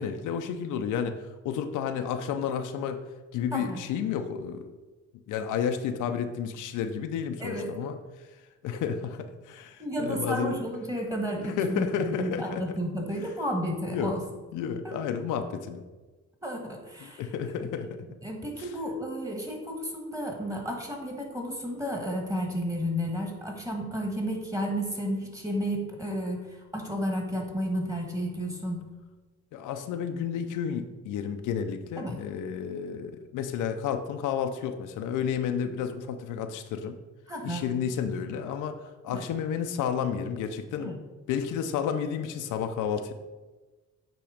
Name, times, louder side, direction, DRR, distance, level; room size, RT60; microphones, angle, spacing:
voice 1, 0.0-3.0 3.3-4.8 5.3-8.0 8.6-10.7 11.4-12.6 13.9-14.2 14.5-15.8 17.0-18.0 29.5-37.0 37.4-38.8 39.0-40.9 41.3-43.1, left 7 dB, 85° left, 7 dB, 0.6 m, -31 dB
voice 2, 9.8-14.2 14.8-15.0 16.4-17.2 17.6-17.7 18.2-28.9 32.0-32.2 37.3-37.7 39.1-39.2 40.8-41.0, equal, 10° right, 2 dB, 1.6 m, -32 dB
8.7 x 3.1 x 5.0 m, 1.2 s
cardioid pair, 90°, 30 cm